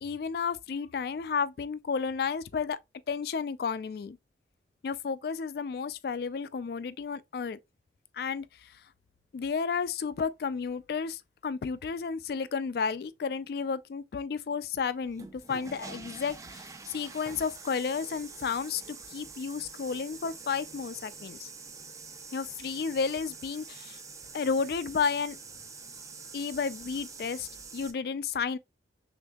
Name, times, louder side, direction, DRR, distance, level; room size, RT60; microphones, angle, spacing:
voice 1, 0.0-2.8 3.1-4.2 4.8-7.6 8.1-8.8 9.3-21.5 22.3-24.0 24.3-25.4 26.3-28.6, left 5 dB, 55° left, 0.3 m, -32 dB
sound 1, 15.0-27.9, right 4 dB, 15° right, 0.4 m, -46 dB
6.2 x 2.6 x 2.2 m
head